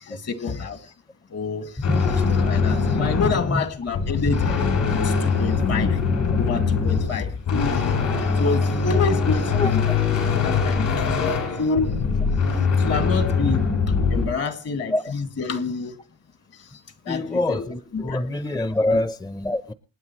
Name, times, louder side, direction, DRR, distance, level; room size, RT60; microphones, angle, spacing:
voice 1, 0.1-0.8 1.3-1.7 2.0-4.4 4.9-6.0 6.4-7.8 8.4-9.8 10.4-12.0 12.8-13.7 14.1-16.0 17.0-18.3 18.8-19.0, left 4 dB, 55° left, 9 dB, 2.3 m, -28 dB
sound 1, 1.8-14.3, left 5 dB, 70° left, 7.2 m, -22 dB
voice 2, 17.1-19.7, left 2 dB, 15° left, 13 dB, 0.8 m, -25 dB
27.5 x 9.4 x 3.2 m, 0.32 s
cardioid pair, 90°, 30 cm